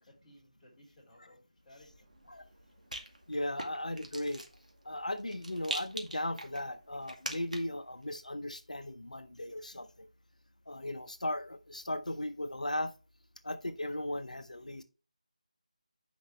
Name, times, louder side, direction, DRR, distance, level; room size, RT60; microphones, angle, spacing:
voice 1, 0.0-2.1, left 1 dB, 5° left, 4.0 m, -60 dB
Rattle, 1.7-7.8, right 1 dB, 85° right, 2.1 m, -44 dB
voice 2, 3.3-4.4 4.8-10.1 10.7-12.9 13.4-14.8, left 1 dB, 80° left, 0.8 m, -37 dB
9.7 x 5.1 x 3.2 m
figure-of-eight pair, 160°, 4 cm